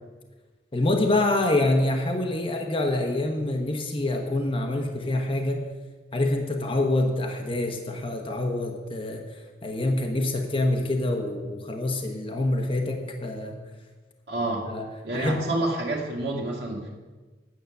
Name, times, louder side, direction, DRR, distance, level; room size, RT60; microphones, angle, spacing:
voice 1, 0.7-5.7 6.1-9.2 9.6-13.6 14.6-14.9 15.1-15.4, left 2 dB, 30° left, 3 dB, 1.0 m, -26 dB
voice 2, 14.3-14.7 15.0-16.9, right 2 dB, 70° right, -4 dB, 1.8 m, -28 dB
9.4 x 7.5 x 6.6 m, 1.3 s
head